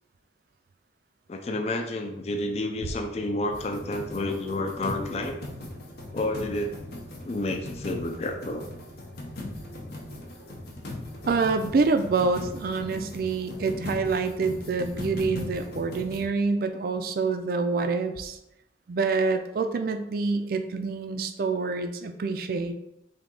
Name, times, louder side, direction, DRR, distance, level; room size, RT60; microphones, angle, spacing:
voice 1, 1.3-5.3 6.1-6.7 7.2-8.6, left 2 dB, 35° left, 4 dB, 0.3 m, -30 dB
sound 1, 3.5-16.3, left 1 dB, 55° left, 0.7 m, -39 dB
voice 2, 11.3-18.4 18.9-22.7, right 4 dB, 50° right, 8 dB, 0.3 m, -26 dB
3.4 x 2.7 x 3.8 m, 0.87 s
head